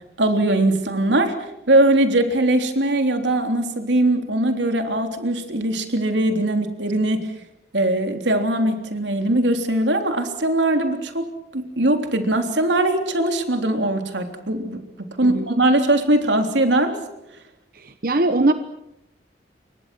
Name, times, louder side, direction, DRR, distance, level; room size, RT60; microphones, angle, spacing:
voice 1, 0.2-7.3 7.7-11.3 11.5-17.0, right 1 dB, 90° right, 5 dB, 3.5 m, -21 dB
voice 2, 17.7-18.5, right 2 dB, 50° right, 9 dB, 1.0 m, -20 dB
28.5 x 24.0 x 6.2 m, 0.86 s
head